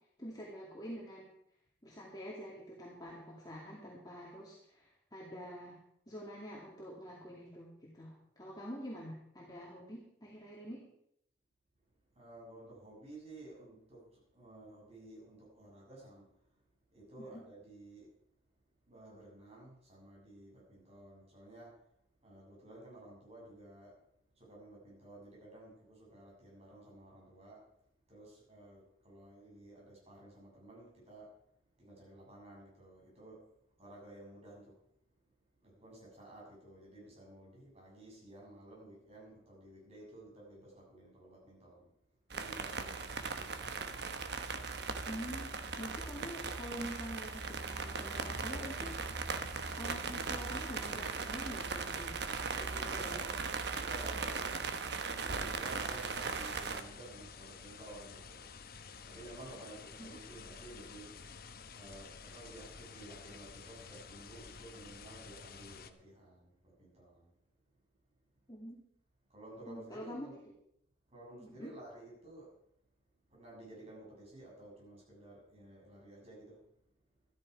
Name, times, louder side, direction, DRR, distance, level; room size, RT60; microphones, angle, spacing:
voice 1, 0.2-1.3 1.8-5.8 6.1-10.9 17.2-17.4 45.1-49.0 49.8-52.2 52.6-53.4 60.0-60.2 68.5-68.8 69.7-70.3 71.4-71.8, equal, 20° left, -4 dB, 2.3 m, -46 dB
voice 2, 12.1-16.3 16.9-18.1 18.8-21.7 22.2-23.9 24.3-27.6 28.1-31.3 31.8-33.4 33.8-34.8 35.6-41.9 42.3-43.7 52.8-53.4 53.8-54.6 54.9-58.5 59.0-61.2 61.8-67.3 69.3-70.3 71.1-72.5 73.3-76.6, right 1 dB, 35° right, -4 dB, 7.3 m, -53 dB
sound 1, 42.3-56.8, right 4 dB, 65° right, 1.1 m, -38 dB
sound 2, 55.6-65.9, left 5 dB, 55° left, 0.9 m, -51 dB
13.5 x 13.0 x 4.8 m, 0.75 s
head